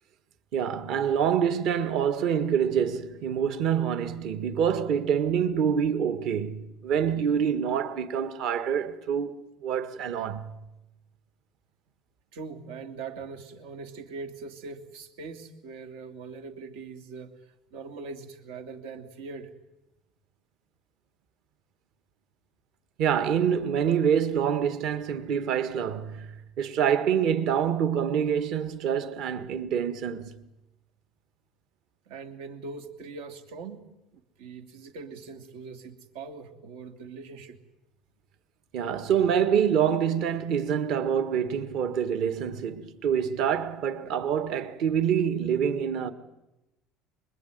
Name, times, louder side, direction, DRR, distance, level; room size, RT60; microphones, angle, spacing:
voice 1, 0.5-10.5 23.0-26.3 26.6-30.4 38.7-46.1, right 8 dB, 50° right, 1.6 m, -26 dB
voice 2, 12.3-19.5 32.1-33.8 34.1-37.6 44.0-44.1, right 4 dB, 85° right, 2.9 m, -41 dB
25.5 x 22.0 x 9.3 m
cardioid pair, 170°, 0 cm